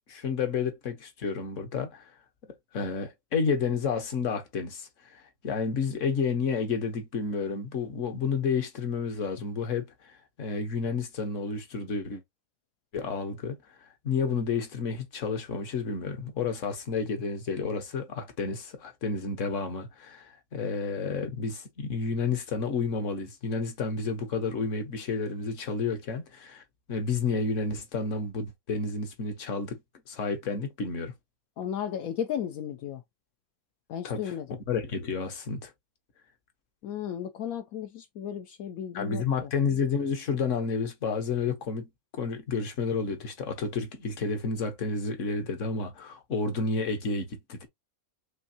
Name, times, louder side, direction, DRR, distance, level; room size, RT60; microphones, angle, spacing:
voice 1, 0.1-2.1 2.7-9.9 10.4-12.2 12.9-13.6 14.0-26.6 26.9-29.8 30.1-31.1 34.0-34.3 34.7-35.7 38.9-47.7, left 5 dB, 60° left, 1.5 m, -30 dB
voice 2, 31.6-33.0 33.9-34.6 36.8-39.5, left 9 dB, 80° left, 1.1 m, -34 dB
6.2 x 2.7 x 2.8 m
omnidirectional pair, 1.5 m